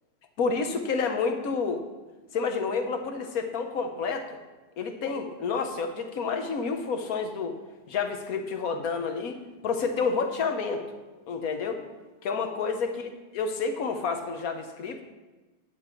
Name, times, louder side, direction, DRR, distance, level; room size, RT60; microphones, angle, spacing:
voice 1, 0.4-1.8 2.3-4.3 4.8-7.6 7.9-9.4 9.6-10.8 11.3-11.8 12.2-15.0, left 5 dB, 55° left, 6 dB, 1.4 m, -29 dB
10.0 x 9.6 x 4.5 m, 1.2 s
omnidirectional pair, 1.9 m